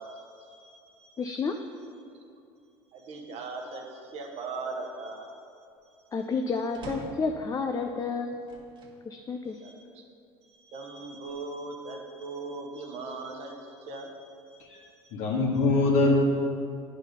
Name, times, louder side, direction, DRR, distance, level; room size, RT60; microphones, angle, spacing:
voice 1, 0.0-1.3 2.9-5.4 5.9-6.0 9.4-10.0 10.4-15.1, right 3 dB, 55° right, 2 dB, 1.2 m, -40 dB
voice 2, 1.2-1.6 6.1-8.4 9.1-9.6, left 4 dB, 25° left, 5 dB, 0.5 m, -30 dB
sound 1, 6.7-7.4 8.4-9.0 9.6-9.7 11.0-11.8, right 2 dB, 35° right, 1.5 m, -44 dB
voice 3, 15.1-16.2, left 3 dB, 65° left, -2 dB, 1.8 m, -23 dB
9.6 x 4.1 x 5.3 m, 2.5 s
hypercardioid pair, 85°, 13 cm